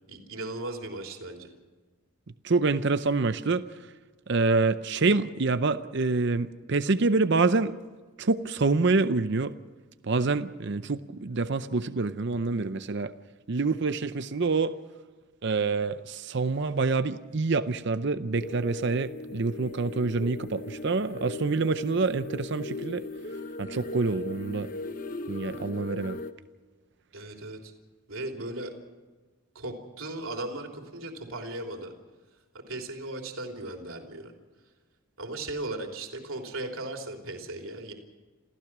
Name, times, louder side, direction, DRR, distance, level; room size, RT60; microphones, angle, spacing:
voice 1, 0.1-1.5 27.1-27.7 28.1-28.7 29.5-31.9 32.5-34.3 35.2-37.9, right 2 dB, 70° right, 2 dB, 3.3 m, -37 dB
voice 2, 2.4-3.8 4.3-7.7 8.2-9.5 10.0-13.1 13.5-14.7 15.4-23.0 23.6-24.7 25.3-26.2, right 3 dB, 55° right, 11 dB, 0.6 m, -26 dB
sound 1, 18.3-26.3, left 2 dB, 40° left, 0.9 m, -38 dB
28.0 x 15.0 x 6.1 m, 1.3 s
head